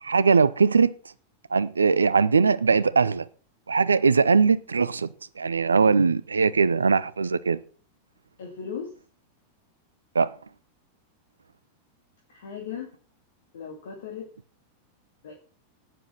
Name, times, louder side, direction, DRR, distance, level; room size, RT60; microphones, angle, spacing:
voice 1, 0.0-0.9 1.5-3.3 3.7-5.1 5.4-7.6 10.1-10.3, right 5 dB, 75° right, 0.6 m, -20 dB
voice 2, 8.4-8.9 12.3-12.9 13.5-14.3 15.2-15.3, left 7 dB, 60° left, 2.2 m, -37 dB
11.0 x 9.7 x 5.8 m
figure-of-eight pair, 90°, 0 cm